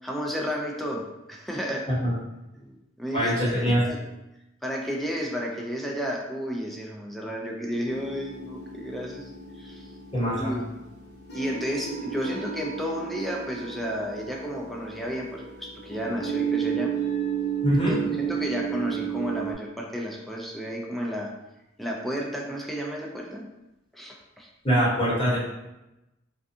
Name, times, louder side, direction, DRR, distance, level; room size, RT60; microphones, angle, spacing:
voice 1, 0.0-1.9 2.5-4.0 4.6-9.9 10.3-10.6 11.3-16.9 17.8-21.3 21.8-23.4 23.9-24.5, equal, ahead, -1 dB, 0.3 m, -32 dB
voice 2, 3.1-3.8 10.1-10.6 17.6-18.0 24.6-25.4, equal, 30° left, -8 dB, 0.9 m, -23 dB
sound 1, 7.9-19.5, right 8 dB, 55° left, 0.6 m, -33 dB
2.6 x 2.3 x 2.5 m, 0.94 s
head